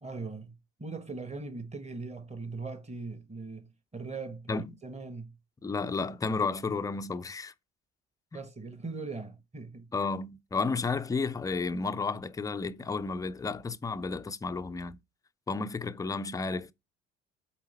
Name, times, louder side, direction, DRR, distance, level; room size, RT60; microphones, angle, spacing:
voice 1, 0.0-5.3 8.3-9.9, right 3 dB, 20° right, 1.2 m, -40 dB
voice 2, 5.6-7.5 8.3-8.4 9.9-15.0 15.5-16.7, left 4 dB, 10° left, 0.4 m, -32 dB
8.2 x 3.9 x 4.1 m
figure-of-eight pair, 50°, 35 cm